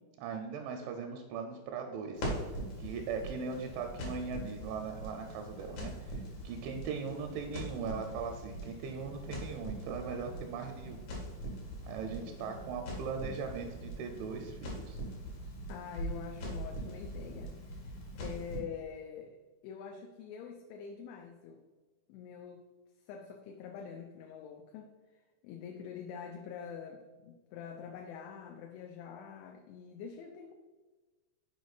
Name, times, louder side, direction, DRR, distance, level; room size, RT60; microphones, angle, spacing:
voice 1, 0.2-11.1 11.8-15.0, right 5 dB, 85° right, 3 dB, 2.9 m, -39 dB
Crackle, 2.1-18.6, equal, 60° left, 2.2 m, -42 dB
voice 2, 12.2-12.8 15.7-19.4 19.6-21.6 22.1-22.6 23.1-24.9 25.4-30.5, left 7 dB, 85° left, 3 dB, 2.7 m, -45 dB
6.9 x 4.9 x 4.0 m, 1.3 s
omnidirectional pair, 5.4 m